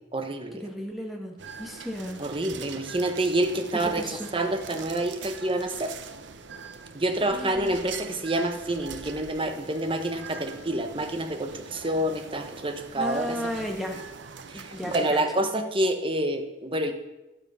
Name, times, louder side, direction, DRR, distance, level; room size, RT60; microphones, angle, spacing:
voice 1, 0.0-0.6 2.2-4.0 4.3-5.9 6.9-13.4 14.5-16.9, right 1 dB, 30° right, 6 dB, 1.2 m, -28 dB
voice 2, 0.6-2.2 3.7-4.3 7.3-7.9 12.9-14.0 14.5-15.2, equal, ahead, 1 dB, 2.0 m, -34 dB
sound 1, 1.4-15.1, right 5 dB, 80° right, 0.9 m, -43 dB
12.5 x 12.0 x 5.5 m, 1.0 s
head